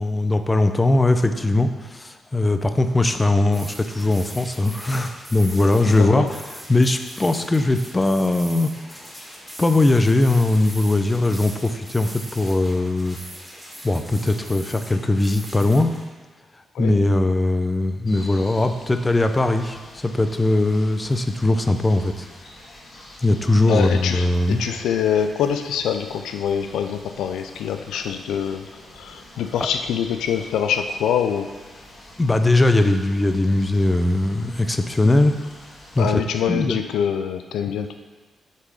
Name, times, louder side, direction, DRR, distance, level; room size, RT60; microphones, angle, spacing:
voice 1, 0.0-6.3 6.7-9.1 9.6-13.2 13.8-15.9 16.8-22.3 23.2-24.6 29.6-29.7 32.2-35.3 35.9-36.2 36.5-36.8, left 2 dB, 25° left, 7 dB, 0.5 m, -20 dB
sound 1, 3.5-16.0, equal, ahead, 2.0 m, -40 dB
voice 2, 5.8-6.3 16.7-17.0 23.7-28.7 28.9-31.5 36.0-37.9, left 8 dB, 85° left, 7 dB, 0.3 m, -25 dB
sound 2, 18.0-36.1, left 1 dB, 50° left, 1.9 m, -45 dB
6.6 x 3.6 x 4.8 m, 1.3 s
supercardioid pair, 60°, 0 cm